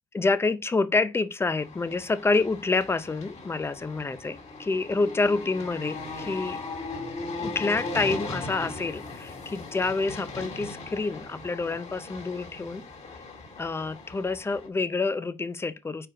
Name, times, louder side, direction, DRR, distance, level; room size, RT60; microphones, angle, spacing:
voice 1, 0.1-6.6 7.4-12.8 13.6-16.1, left 3 dB, 15° left, 0.5 m, -28 dB
sound 1, 1.6-14.7, left 3 dB, 40° left, 2.1 m, -38 dB
4.7 x 4.6 x 4.9 m
cardioid pair, 110°, 17 cm